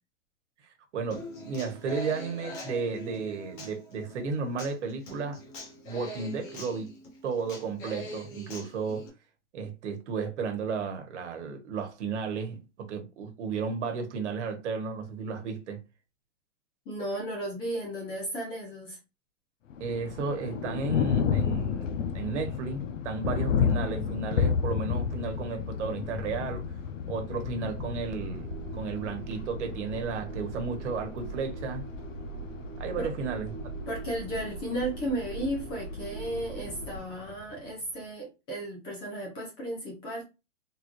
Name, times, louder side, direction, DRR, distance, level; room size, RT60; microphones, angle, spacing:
voice 1, 0.9-5.4 5.8-6.9 7.2-9.1 9.5-15.8 19.8-26.6 27.1-31.9 32.8-33.5, right 5 dB, 70° right, 1.2 m, -33 dB
Human voice / Acoustic guitar, 1.1-9.1, equal, 40° left, 1.2 m, -43 dB
voice 2, 16.9-19.0 33.0-33.1 33.9-40.2, right 1 dB, 15° left, 0.5 m, -34 dB
Thunder, 19.7-37.7, left 7 dB, 90° left, 0.7 m, -32 dB
sound 1, 27.6-37.0, right 2 dB, 35° right, 1.2 m, -40 dB
3.6 x 2.4 x 3.0 m
supercardioid pair, 165°, 37 cm